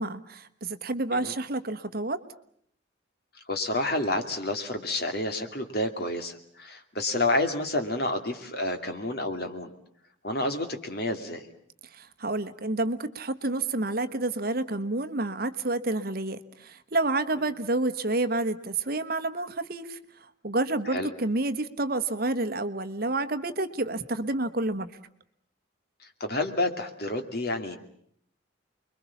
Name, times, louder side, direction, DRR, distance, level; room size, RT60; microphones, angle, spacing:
voice 1, 0.0-2.2 11.9-20.0 20.4-24.9, right 2 dB, 50° right, 10 dB, 1.2 m, -29 dB
voice 2, 3.3-9.7 10.2-11.5 20.9-21.1 26.0-27.8, left 2 dB, 50° left, 6 dB, 2.6 m, -29 dB
29.5 x 22.5 x 7.2 m, 0.65 s
head